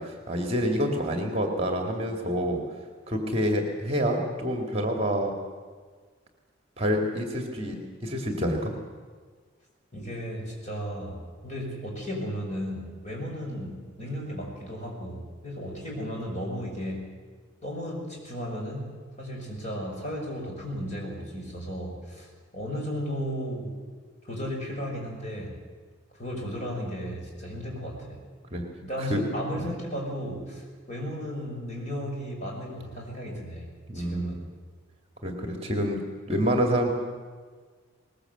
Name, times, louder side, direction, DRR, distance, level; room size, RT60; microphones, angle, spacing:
voice 1, 0.0-2.6 3.1-5.3 6.8-8.7 28.5-28.6 29.0-29.2 29.6-29.7 33.9-34.4 35.2-36.0 36.3-36.9, equal, 30° right, 3 dB, 2.2 m, -27 dB
voice 2, 9.9-17.1 17.6-18.9 19.2-22.3 22.5-23.8 24.2-25.5 26.2-28.2 28.8-33.6 33.9-34.4, equal, 35° left, -1 dB, 5.9 m, -35 dB
20.5 x 20.5 x 7.9 m, 1.5 s
head